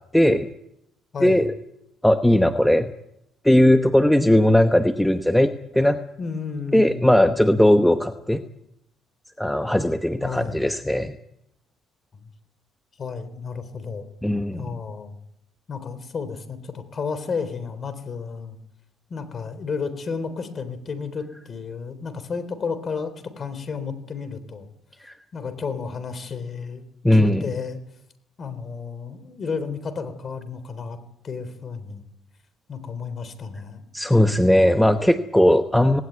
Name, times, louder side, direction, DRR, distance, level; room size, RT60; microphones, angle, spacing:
voice 1, 0.1-0.5 1.2-1.5 2.0-2.9 3.4-6.0 6.7-8.4 9.4-11.2 14.2-14.7 25.0-25.1 27.0-27.4 33.9-36.0, left 1 dB, 5° left, 8 dB, 1.0 m, -18 dB
voice 2, 1.1-1.4 6.2-7.1 10.2-10.6 13.0-14.1 14.5-15.2 15.7-18.6 19.1-24.7 25.3-26.8 27.1-27.8 28.4-31.0 31.2-32.1 32.7-33.8, left 5 dB, 40° left, 12 dB, 3.7 m, -32 dB
18.5 x 18.0 x 9.5 m, 0.78 s
cardioid pair, 105°, 0 cm